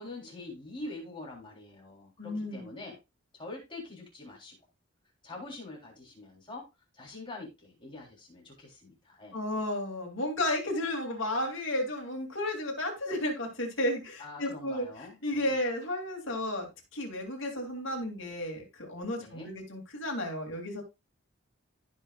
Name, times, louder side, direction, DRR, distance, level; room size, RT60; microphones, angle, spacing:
voice 1, 0.0-3.0 3.3-4.5 5.2-6.7 6.9-9.4 14.2-15.6 19.2-19.5, left 2 dB, 20° left, -2 dB, 3.6 m, -44 dB
voice 2, 2.2-2.7 9.3-20.8, left 1 dB, 55° left, 2 dB, 2.9 m, -33 dB
15.5 x 5.8 x 2.5 m, 0.25 s
head